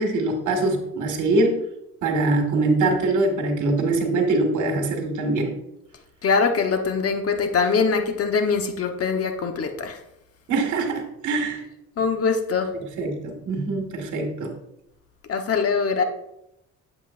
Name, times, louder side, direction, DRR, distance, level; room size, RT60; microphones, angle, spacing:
voice 1, 0.0-1.6 2.0-5.5 10.5-11.6 13.0-14.5, right 2 dB, 75° right, 3 dB, 1.8 m, -23 dB
voice 2, 6.2-10.0 12.0-12.7 15.3-16.0, left 5 dB, 50° left, 5 dB, 1.2 m, -23 dB
7.8 x 7.8 x 2.6 m, 0.84 s
cardioid pair, 90°, 30 cm